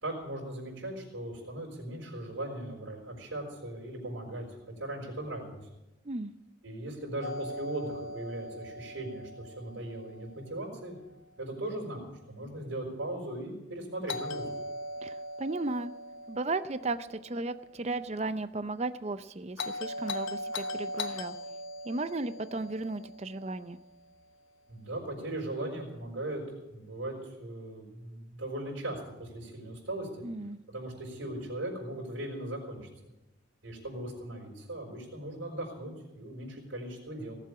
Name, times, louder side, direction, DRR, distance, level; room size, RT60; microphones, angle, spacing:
voice 1, 0.0-5.6 6.6-11.0 11.4-14.4 24.7-26.4 26.7-30.2 30.7-32.9 33.6-37.4, right 1 dB, 85° right, -1 dB, 5.0 m, -38 dB
Doorbell, 7.2-11.2 14.1-18.3 19.6-24.0, left 1 dB, 80° left, 0.9 m, -40 dB
voice 2, 15.0-15.9 16.3-21.4 21.8-23.8 30.2-30.6, right 2 dB, 35° right, 12 dB, 0.6 m, -35 dB
18.5 x 7.6 x 8.5 m, 0.95 s
head